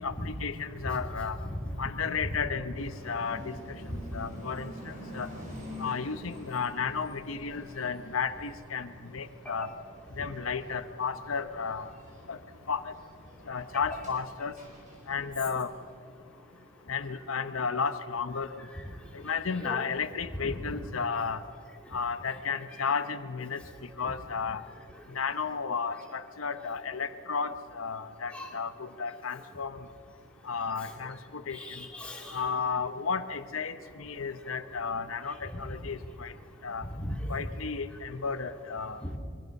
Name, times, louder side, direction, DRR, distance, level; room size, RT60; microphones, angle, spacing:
voice 1, 0.0-1.4 1.8-3.6 3.9-5.3 5.8-9.7 10.2-11.9 12.3-12.4 12.7-12.9 13.5-14.6 15.1-15.7 16.9-18.5 19.1-21.4 21.9-23.6 24.0-24.6 25.1-29.9 30.4-31.9 32.3-36.3 36.6-36.8 37.3-39.0, left 5 dB, 90° left, 10 dB, 1.0 m, -33 dB
voice 2, 1.5-1.9 2.2-2.4 3.9-4.0 9.6-9.7 19.6-19.9 20.3-20.7 28.3-28.5 31.5-32.4 35.5-35.6 37.0-37.5 39.0-39.2, equal, 5° left, -1 dB, 2.9 m, -36 dB
sound 1, 2.7-15.9, equal, 35° right, 6.4 m, -47 dB
24.5 x 23.0 x 6.6 m, 2.3 s
head